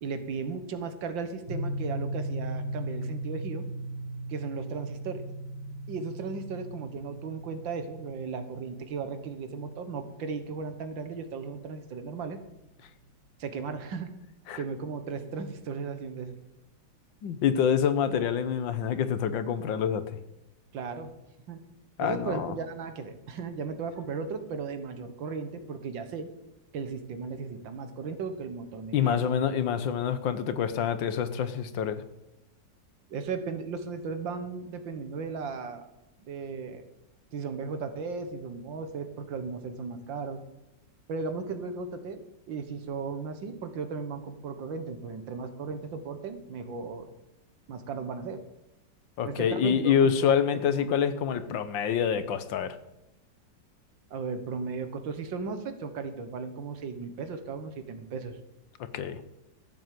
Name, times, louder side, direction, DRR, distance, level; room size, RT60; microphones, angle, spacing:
voice 1, 0.0-3.6 4.3-5.2 5.9-12.4 13.4-14.1 14.6-16.3 20.7-21.1 21.5-21.6 22.0-26.3 26.7-29.3 33.1-35.9 36.3-36.8 37.3-40.4 41.1-42.2 42.5-47.1 47.7-48.4 49.2-51.0 54.1-58.4, right 5 dB, 85° right, 9 dB, 2.0 m, -36 dB
sound 1, 1.5-11.6, right 1 dB, 55° right, 3.9 m, -38 dB
voice 2, 17.2-20.2 22.0-22.5 28.9-32.0 49.2-52.8 58.9-59.2, left 8 dB, 80° left, 12 dB, 1.7 m, -26 dB
14.0 x 7.8 x 7.7 m, 0.92 s
omnidirectional pair, 2.0 m